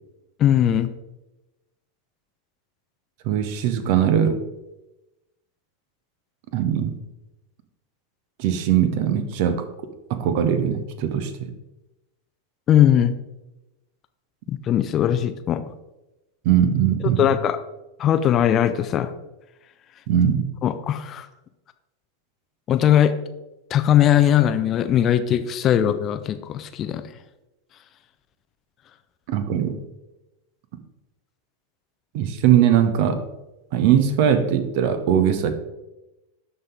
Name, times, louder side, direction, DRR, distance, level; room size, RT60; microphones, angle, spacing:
voice 1, 0.4-0.9 12.7-13.2 14.5-15.6 17.2-17.6 18.0-19.1 20.6-21.3 22.7-23.1 23.7-27.0, left 10 dB, 30° left, 11 dB, 0.4 m, -19 dB
voice 2, 3.2-4.4 6.5-7.0 8.4-9.6 10.1-11.5 16.4-17.3 20.1-20.5 29.3-29.8 32.1-33.2 33.7-35.5, right 9 dB, 45° right, 10 dB, 0.8 m, -20 dB
12.0 x 4.1 x 3.7 m, 0.99 s
figure-of-eight pair, 90°, 0 cm